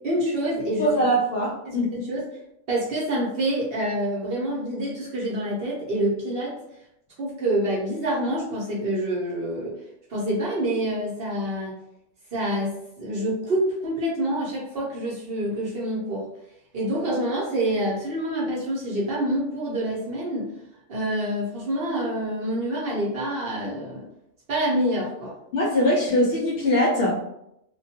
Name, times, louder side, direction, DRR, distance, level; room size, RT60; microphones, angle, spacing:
voice 1, 0.0-0.9 1.7-2.2 2.7-6.6 7.2-9.7 10.1-11.7 12.3-12.7 13.0-16.2 16.7-20.5 20.9-24.0 24.5-25.3, right 1 dB, 55° right, -5 dB, 0.8 m, -27 dB
voice 2, 0.8-1.9 25.5-27.2, equal, 65° left, -4 dB, 0.6 m, -22 dB
2.2 x 2.2 x 2.7 m, 0.80 s
omnidirectional pair, 1.3 m